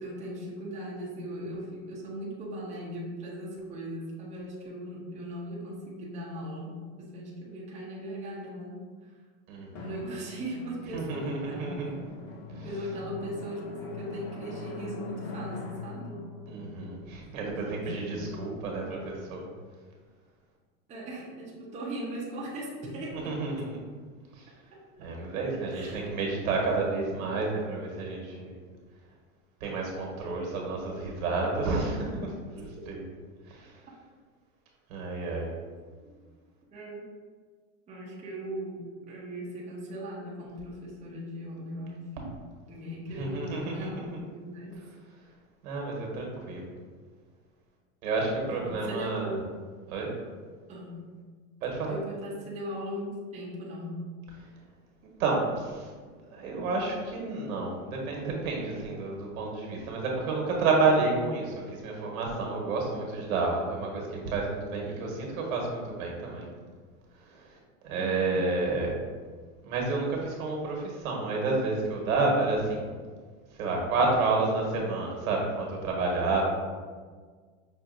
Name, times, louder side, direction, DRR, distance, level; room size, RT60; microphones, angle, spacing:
voice 1, 0.0-8.8 9.8-12.1 12.6-16.2 17.4-18.5 20.9-23.4 25.0-25.1 25.7-26.2 35.9-36.1 36.7-37.1 37.9-42.2 42.7-44.8 48.5-49.4 50.7-51.1 51.9-54.1 67.9-68.4, equal, 15° right, -5 dB, 0.7 m, -39 dB
voice 2, 9.5-9.9 10.9-12.1 12.5-12.7 16.5-19.5 23.1-23.8 24.3-24.5 25.0-28.5 29.6-33.0 33.5-33.8 34.9-35.5 43.1-44.2 45.6-46.7 48.0-49.4 49.9-50.1 51.6-52.0 55.2-55.9 56.3-66.5 67.2-67.6 67.8-68.9 69.6-72.9 73.6-76.6, right 3 dB, 75° right, -1 dB, 1.3 m, -30 dB
Drum, 9.7-18.0, left 3 dB, 30° left, 0.4 m, -42 dB
5.7 x 2.6 x 2.6 m, 1.6 s
supercardioid pair, 135°, 42 cm